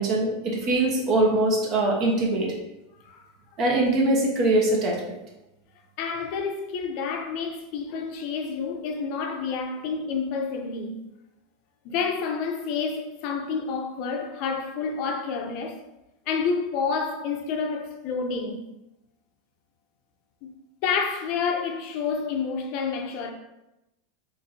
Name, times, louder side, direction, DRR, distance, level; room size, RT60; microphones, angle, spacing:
voice 1, 0.0-2.5 3.6-5.0, right 2 dB, 40° right, 0.9 m, -22 dB
voice 2, 6.0-11.0 11.8-15.8 16.3-18.6 20.4-20.5 20.8-23.3, left 5 dB, 50° left, 0.5 m, -29 dB
4.2 x 3.1 x 2.6 m
supercardioid pair, 150°, 0 cm